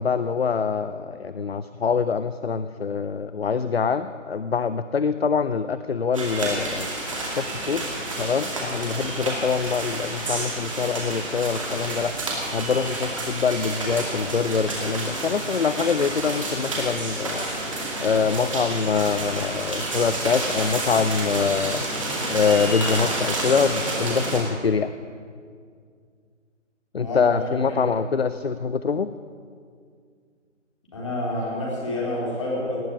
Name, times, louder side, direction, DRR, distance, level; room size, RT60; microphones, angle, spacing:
voice 1, 0.0-6.9 7.3-7.9 8.2-12.2 12.5-17.5 18.0-21.8 22.3-24.9 26.9-29.1, left 5 dB, 55° left, 13 dB, 0.5 m, -24 dB
sound 1, 6.1-24.4, right 2 dB, 25° right, 2.5 m, -29 dB
voice 2, 27.0-27.8 30.9-32.8, left 1 dB, 25° left, -5 dB, 3.9 m, -28 dB
18.5 x 7.2 x 9.8 m, 2.1 s
hypercardioid pair, 180°, 38 cm